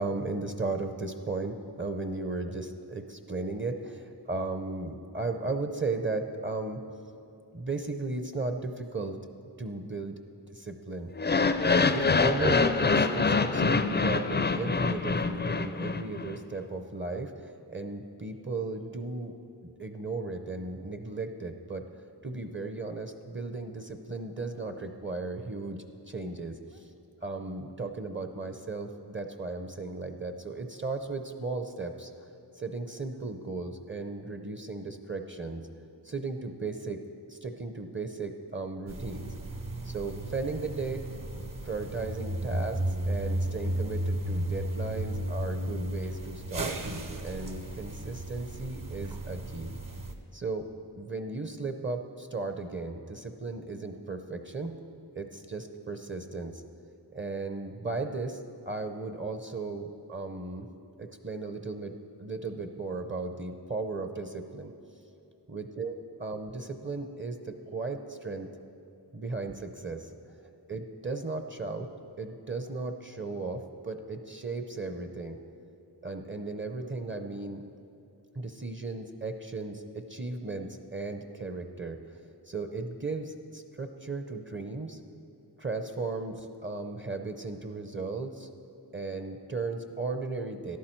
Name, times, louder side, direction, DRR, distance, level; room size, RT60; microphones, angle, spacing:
voice 1, 0.0-6.8 7.5-9.2 9.6-10.2 10.5-11.1 11.8-19.3 19.6-21.9 22.2-26.9 27.2-32.1 32.6-35.7 36.0-37.0 37.3-39.3 39.8-41.1 41.6-46.8 47.2-49.7 50.3-50.7 51.0-54.8 55.2-56.6 57.1-58.4 58.7-60.7 61.0-64.7 65.5-68.5 69.1-70.1 70.7-71.9 72.2-75.4 76.0-77.6 78.3-82.0 82.5-85.0 85.6-88.5 88.9-90.8, right 3 dB, 30° right, 7 dB, 0.6 m, -36 dB
sound 1, 11.2-16.3, left 4 dB, 25° left, 0.4 m, -25 dB
sound 2, 38.9-50.1, right 1 dB, 50° right, 1.0 m, -34 dB
13.0 x 11.0 x 4.5 m, 2.8 s
wide cardioid pair, 70°, 41 cm